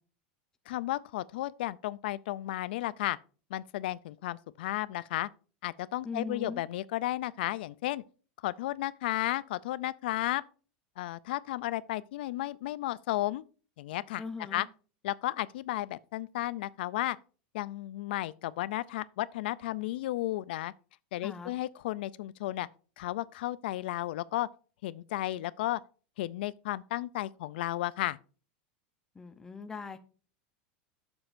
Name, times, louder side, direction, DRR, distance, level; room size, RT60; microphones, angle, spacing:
voice 1, 0.7-3.2 3.5-5.3 5.6-8.0 8.4-10.4 11.0-13.4 13.8-14.2 14.5-14.7 15.0-17.2 17.5-20.7 21.1-22.7 23.0-24.5 24.8-25.8 26.2-28.2, left 16 dB, 70° left, 0.4 m, -33 dB
voice 2, 6.0-6.6 14.2-14.7 21.2-21.5 29.1-30.0, left 4 dB, 10° left, 0.7 m, -40 dB
11.0 x 7.0 x 2.6 m
supercardioid pair, 165°, 6 cm